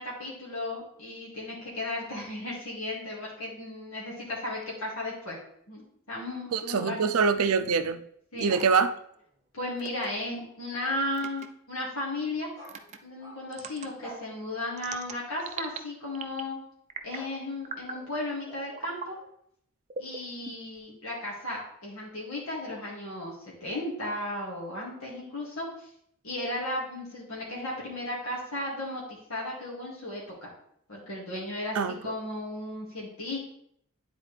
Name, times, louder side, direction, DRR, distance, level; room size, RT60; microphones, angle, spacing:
voice 1, 0.0-5.4 5.7-5.8 6.1-7.0 8.3-8.5 9.5-12.5 13.0-16.6 17.0-19.1 20.0-23.4 23.6-25.9 26.2-29.0 29.3-30.5 30.9-33.4, left 1 dB, 80° left, 2.1 m, -35 dB
voice 2, 6.5-8.0 8.4-8.9 31.7-32.1, right 5 dB, 90° right, 0.5 m, -25 dB
sound 1, 8.5-9.4 12.6-13.6 14.0-14.3 15.6-15.8 17.1-19.3, equal, 15° left, 2.4 m, -50 dB
sound 2, 8.5-8.8 9.8-10.1 11.1-11.5 12.6-13.0 13.5-13.9 14.8-15.8 16.1-16.5 16.9-17.3 17.6-18.0 18.8-19.1 19.9-20.8, right 4 dB, 30° right, 0.5 m, -39 dB
9.7 x 4.2 x 3.3 m
head